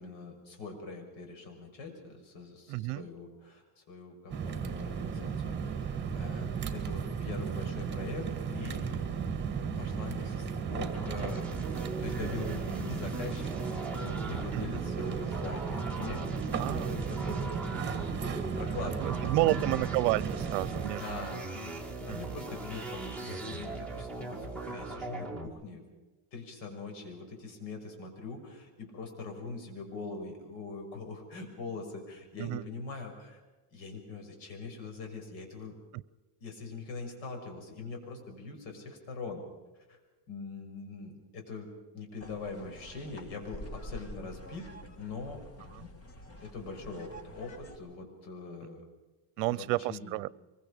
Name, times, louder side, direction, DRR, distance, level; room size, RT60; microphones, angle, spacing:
voice 1, 0.0-9.1 9.8-11.5 12.0-13.5 13.9-17.8 18.2-19.8 20.8-21.6 22.0-25.8 26.3-33.4 33.7-35.7 36.4-39.4 39.9-40.0 40.3-45.4 46.4-48.8 49.4-50.1, left 3 dB, 75° left, 4 dB, 6.5 m, -43 dB
voice 2, 2.7-3.1 14.5-14.8 16.6-16.9 17.2-17.4 18.8-21.4 22.1-22.3 32.4-32.6 35.9-36.0 45.7-45.8 49.4-50.3, right 20 dB, 75° right, 22 dB, 0.8 m, -31 dB
sound 1, 4.3-20.9, right 6 dB, 20° right, 2.4 m, -35 dB
sound 2, 10.7-25.5, right 2 dB, ahead, 2.3 m, -39 dB
sound 3, 42.2-47.8, equal, 30° left, 2.0 m, -47 dB
24.5 x 23.0 x 5.1 m, 1.2 s
cardioid pair, 150°, 49 cm